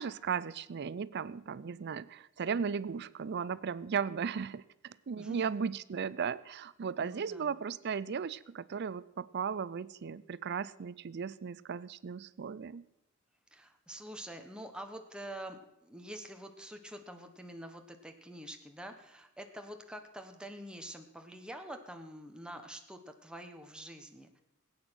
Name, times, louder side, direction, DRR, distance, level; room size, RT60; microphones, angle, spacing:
voice 1, 0.0-12.8, right 6 dB, 50° right, 19 dB, 0.4 m, -36 dB
voice 2, 5.2-5.5 7.0-7.6 13.5-24.4, right 1 dB, 5° right, 5 dB, 1.0 m, -46 dB
16.5 x 8.9 x 6.2 m, 0.87 s
head